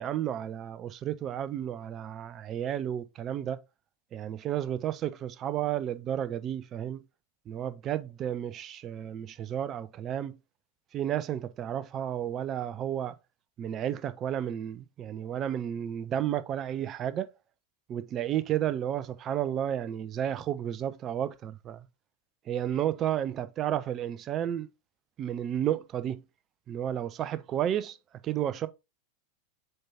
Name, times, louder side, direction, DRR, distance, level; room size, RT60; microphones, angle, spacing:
voice 1, 0.0-3.6 4.1-7.0 7.5-10.4 10.9-13.1 13.6-17.3 17.9-21.9 22.5-24.7 25.2-26.2 26.7-28.0 28.2-28.7, right 10 dB, 30° right, 0.6 m, -32 dB
7.6 x 4.6 x 2.8 m
figure-of-eight pair, 90°, 0 cm